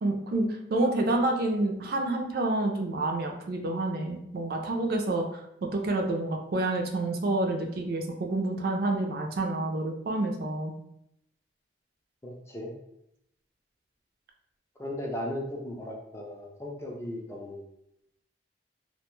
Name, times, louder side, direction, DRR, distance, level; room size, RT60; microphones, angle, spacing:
voice 1, 0.0-5.4 5.7-10.7, right 2 dB, 55° right, 2 dB, 0.4 m, -28 dB
voice 2, 12.2-12.7 14.8-17.6, left 1 dB, 15° left, 0 dB, 0.4 m, -36 dB
2.4 x 2.2 x 3.0 m, 0.77 s
head